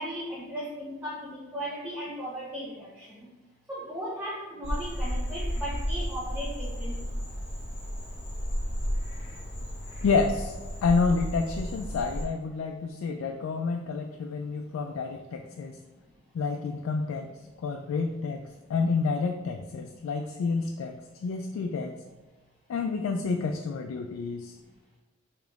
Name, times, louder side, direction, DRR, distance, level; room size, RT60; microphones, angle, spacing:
voice 1, 0.0-3.2 3.7-6.9, equal, 10° right, -7 dB, 0.6 m, -36 dB
Frog, 4.6-12.2, equal, 25° left, 1.2 m, -33 dB
voice 2, 10.0-10.5 10.8-15.8 16.3-17.3 17.6-21.9 22.7-24.6, left 4 dB, 80° left, 3 dB, 0.3 m, -29 dB
5.0 x 2.9 x 2.4 m, 1.2 s
head